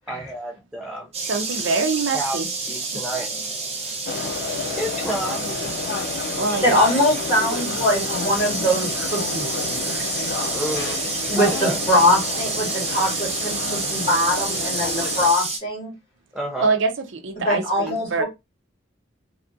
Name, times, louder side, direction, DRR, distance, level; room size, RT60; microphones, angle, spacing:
voice 1, 0.1-1.1 2.1-2.4 2.7-3.4 4.8-5.6 10.5-11.0 11.3-11.8 16.3-16.7, right 1 dB, 5° right, 0.4 m, -29 dB
sound 1, 1.1-15.6, right 3 dB, 35° right, 0.9 m, -29 dB
voice 2, 1.3-2.5 2.9-3.0 6.4-6.8 16.6-18.2, right 4 dB, 75° right, 0.6 m, -24 dB
sound 2, 4.1-15.3, left 4 dB, 60° left, 0.5 m, -31 dB
voice 3, 6.6-10.3 11.3-15.9 17.4-18.2, left 1 dB, 30° left, 2.2 m, -22 dB
3.3 x 2.4 x 2.6 m
head